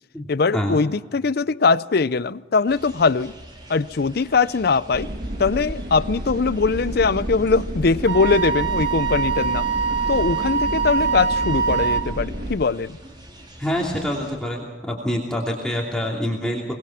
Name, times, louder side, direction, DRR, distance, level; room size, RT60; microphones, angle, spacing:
voice 1, 0.3-3.3 3.7-5.1 5.4-9.7 10.1-13.0, left 4 dB, 55° left, 18 dB, 0.6 m, -21 dB
sound 1, 2.7-14.4, right 1 dB, 25° right, 4.2 m, -46 dB
sound 2, 4.9-12.5, equal, 50° right, 2.1 m, -30 dB
Wind instrument woodwind instrument, 8.1-12.0, right 6 dB, 70° right, 1.5 m, -23 dB
voice 2, 13.6-16.6, equal, 5° left, -3 dB, 2.7 m, -26 dB
24.0 x 20.0 x 5.9 m, 1.3 s
head